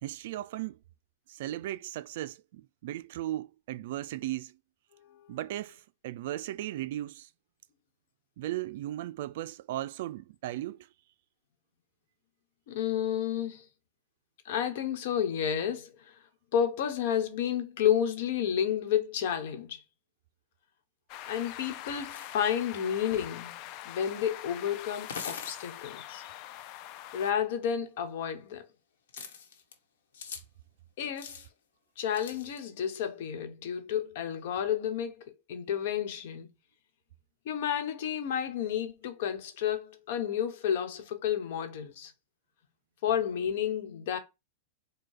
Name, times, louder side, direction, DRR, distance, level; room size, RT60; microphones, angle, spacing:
voice 1, 0.0-0.8 1.3-4.5 5.3-7.3 8.4-10.9, right 14 dB, 65° right, 0.3 m, -36 dB
voice 2, 5.0-5.4 12.7-13.7 14.4-16.2 16.5-19.8 21.2-26.2 27.1-28.7 31.0-31.5 32.0-36.5 37.4-42.1 43.0-44.2, left 9 dB, 65° left, 1.1 m, -31 dB
sound 1, 21.1-27.3, left 13 dB, 45° left, 0.4 m, -44 dB
Lots Of Tiles, 22.1-22.4 24.0-24.1 24.9-25.6 27.7-27.8 29.1-29.7 30.1-30.4 31.0-31.5 32.1-32.6, left 6 dB, 90° left, 1.2 m, -42 dB
4.8 x 2.2 x 4.4 m
supercardioid pair, 150°, 0 cm